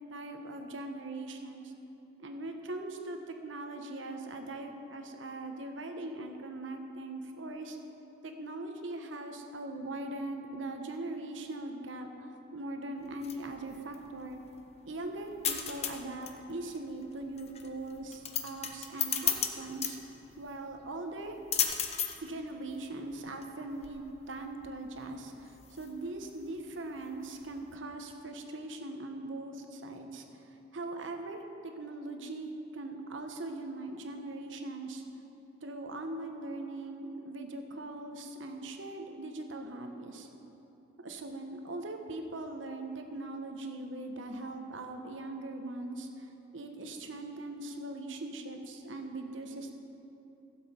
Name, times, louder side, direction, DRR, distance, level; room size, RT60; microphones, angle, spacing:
voice 1, 0.1-1.7 2.2-7.8 8.2-14.4 14.9-20.0 20.4-21.4 22.2-35.0 35.6-40.3 41.0-49.8, right 2 dB, 75° right, 5 dB, 1.0 m, -41 dB
sound 1, 13.0-27.8, left 8 dB, 35° left, 0.7 m, -37 dB
15.5 x 7.4 x 4.3 m, 3.0 s
head